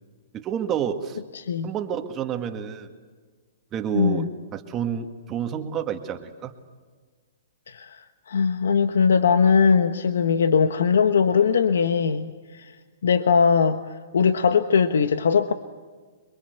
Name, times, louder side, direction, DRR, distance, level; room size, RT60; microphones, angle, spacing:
voice 1, 0.3-1.2 1.6-2.9 3.7-6.5, right 9 dB, 25° right, 5 dB, 1.9 m, -29 dB
voice 2, 1.3-1.7 3.9-4.3 7.7-12.7 13.0-15.5, left 6 dB, 85° left, 10 dB, 1.2 m, -20 dB
27.5 x 23.0 x 8.1 m, 1.5 s
hypercardioid pair, 145°, 0 cm